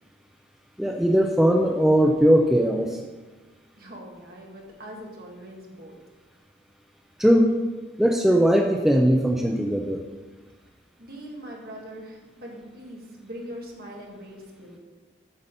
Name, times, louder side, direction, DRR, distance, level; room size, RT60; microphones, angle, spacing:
voice 1, 0.8-3.0 7.2-7.6 8.0-10.0, equal, ahead, 1 dB, 0.5 m, -19 dB
voice 2, 3.8-6.0 11.0-14.8, equal, 50° right, -1 dB, 1.9 m, -41 dB
8.2 x 5.7 x 6.6 m, 1.2 s
head